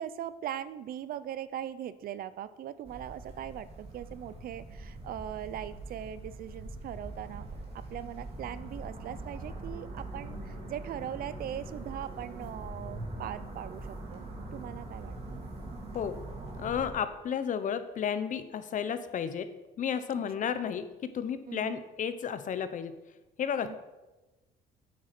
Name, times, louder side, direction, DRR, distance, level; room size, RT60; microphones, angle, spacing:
voice 1, 0.0-7.5 7.7-14.3 14.5-15.4 21.5-21.8 23.6-23.8, right 10 dB, 60° right, 15 dB, 0.6 m, -40 dB
sound 1, 2.8-16.9, right 2 dB, 35° right, 3.1 m, -42 dB
voice 2, 16.6-19.5 19.8-23.0 23.4-23.8, left 8 dB, 50° left, 11 dB, 1.0 m, -32 dB
9.2 x 8.5 x 6.0 m, 1.1 s
cardioid pair, 110°, 17 cm